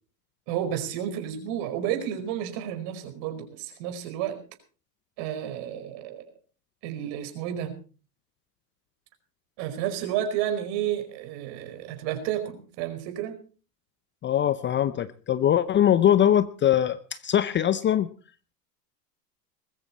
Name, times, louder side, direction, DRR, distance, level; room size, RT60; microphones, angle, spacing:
voice 1, 0.5-4.4 5.2-6.3 6.8-7.8 9.6-13.4, right 10 dB, 55° right, 7 dB, 5.0 m, -31 dB
voice 2, 14.2-18.1, left 10 dB, 25° left, 16 dB, 0.7 m, -22 dB
20.5 x 14.0 x 4.3 m, 0.39 s
hypercardioid pair, 100°, 49 cm